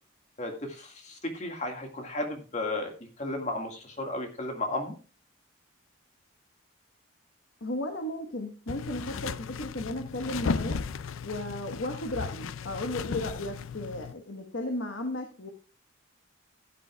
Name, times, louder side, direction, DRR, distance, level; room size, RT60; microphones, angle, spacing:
voice 1, 0.4-5.0, left 2 dB, 35° left, 4 dB, 1.9 m, -34 dB
voice 2, 7.6-10.8 11.2-15.5, left 1 dB, 65° left, 4 dB, 1.3 m, -35 dB
sound 1, 8.7-14.1, left 5 dB, 80° left, 0.5 m, -35 dB
15.5 x 9.3 x 2.3 m, 0.34 s
head